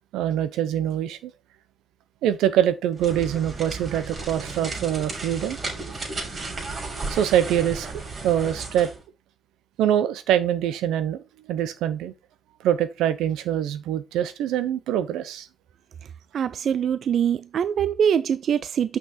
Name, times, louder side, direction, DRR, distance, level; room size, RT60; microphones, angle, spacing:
voice 1, 0.1-1.3 2.2-5.6 7.1-7.9 8.2-8.9 9.8-11.2 11.5-12.1 12.6-15.5, right 10 dB, 90° right, 0.8 m, -24 dB
sound 1, 2.9-9.0, right 3 dB, 35° right, 3.7 m, -34 dB
voice 2, 16.3-19.0, right 8 dB, 60° right, 0.3 m, -23 dB
6.1 x 5.8 x 4.2 m
cardioid pair, 90°, 0 cm